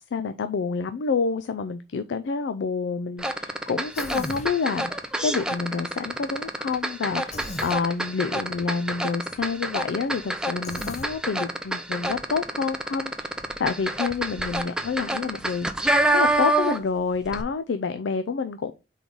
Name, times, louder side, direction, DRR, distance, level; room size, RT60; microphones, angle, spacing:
voice 1, 0.1-5.0 5.2-13.3 13.6-15.7 16.1-18.7, left 5 dB, 75° left, 0.4 m, -28 dB
sound 1, 3.2-17.0 17.2-17.4, right 1 dB, 5° right, 0.5 m, -27 dB
Human voice, 3.9-4.5 7.3-7.8 10.6-11.1, left 2 dB, 40° left, 0.9 m, -36 dB
4.6 x 3.9 x 5.3 m
head